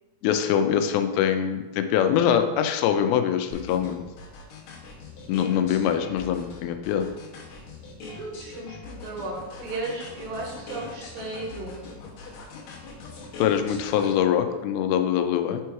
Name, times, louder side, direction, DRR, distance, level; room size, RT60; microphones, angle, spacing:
voice 1, 0.2-4.0 5.3-7.1 13.4-15.6, left 9 dB, 85° left, 7 dB, 2.5 m, -23 dB
sound 1, 3.5-14.2, left 4 dB, 65° left, 2.0 m, -42 dB
voice 2, 8.2-9.4 9.6-11.8, right 2 dB, 75° right, 0 dB, 2.5 m, -35 dB
7.0 x 3.0 x 4.6 m, 1.2 s
omnidirectional pair, 4.3 m